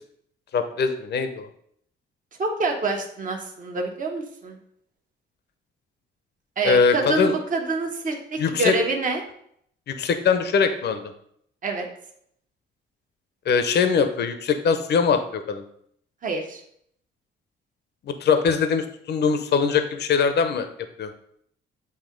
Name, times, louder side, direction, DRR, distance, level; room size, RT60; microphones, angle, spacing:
voice 1, 0.5-1.5 6.6-7.3 8.4-8.8 9.9-11.1 13.5-15.6 18.0-20.7 21.0-21.1, left 5 dB, 55° left, 8 dB, 0.7 m, -22 dB
voice 2, 2.4-4.6 6.6-9.2 11.6-11.9 16.2-16.6, right 3 dB, 40° right, 2 dB, 1.2 m, -26 dB
7.9 x 2.8 x 5.2 m, 0.68 s
cardioid pair, 90°, 20 cm